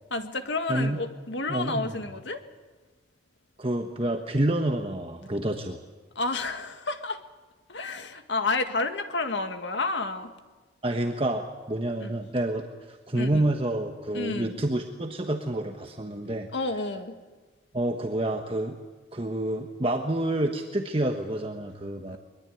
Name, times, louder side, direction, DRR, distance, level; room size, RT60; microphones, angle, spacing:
voice 1, 0.1-2.4 6.2-7.2 7.7-10.3 12.0-12.2 13.2-13.5 14.1-14.6 16.5-17.1 22.1-22.2, left 3 dB, 70° left, 7 dB, 2.0 m, -30 dB
voice 2, 0.7-1.0 1.5-2.0 3.6-5.8 10.8-16.5 17.7-18.8 19.1-22.2, right 1 dB, 30° right, 4 dB, 1.3 m, -28 dB
22.5 x 22.0 x 9.3 m, 1.3 s
head